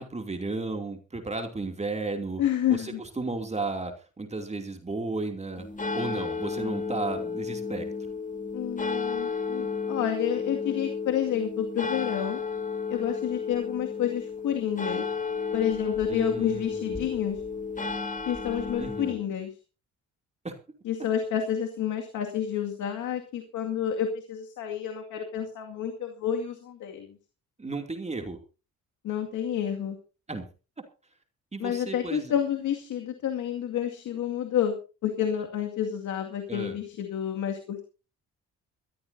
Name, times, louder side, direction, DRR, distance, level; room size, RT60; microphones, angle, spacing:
voice 1, 0.0-2.4 2.7-5.7 5.9-7.9 16.1-17.2 18.8-19.2 20.4-20.5 27.6-28.4 30.3-30.4 31.5-32.3 36.5-36.8, right 3 dB, 20° right, 4 dB, 2.8 m, -34 dB
voice 2, 2.4-3.0 8.5-12.4 12.9-15.1 15.5-17.4 18.3-19.5 20.8-27.2 29.0-30.0 31.6-34.7 35.0-37.8, left 9 dB, 80° left, 4 dB, 2.3 m, -29 dB
sound 1, 5.5-19.1, left 5 dB, 25° left, 2.7 m, -32 dB
22.0 x 14.5 x 2.8 m, 0.34 s
cardioid pair, 90°, 30 cm